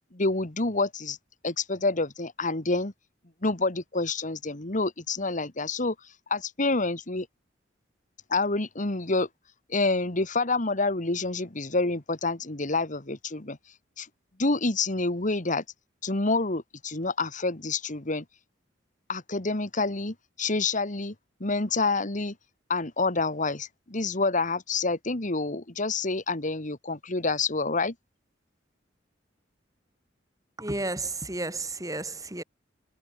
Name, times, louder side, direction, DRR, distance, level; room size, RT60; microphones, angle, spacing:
voice 1, 0.1-1.2 1.4-2.9 3.4-7.3 8.3-9.3 9.7-13.6 14.0-14.1 14.4-15.6 16.0-18.2 19.1-21.1 21.4-22.3 22.7-27.9, left 3 dB, 40° left, 2.1 m, -28 dB
voice 2, 30.6-32.4, right 2 dB, 20° right, 7.6 m, -32 dB
head